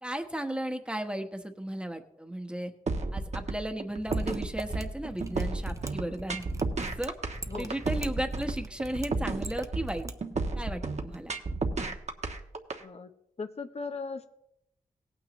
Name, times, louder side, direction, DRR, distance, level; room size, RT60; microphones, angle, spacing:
voice 1, 0.0-2.7 3.1-6.4 6.8-7.1 7.5-10.1 10.5-11.3, right 1 dB, 5° right, 5 dB, 1.2 m, -35 dB
sound 1, 2.9-12.8, right 3 dB, 50° right, 1.2 m, -32 dB
Mechanisms, 4.0-10.1 10.4-10.5, right 2 dB, 20° right, 0.8 m, -42 dB
voice 2, 13.4-14.2, left 4 dB, 50° left, 6 dB, 0.8 m, -38 dB
18.0 x 9.0 x 3.1 m, 0.78 s
wide cardioid pair, 80°, 14 cm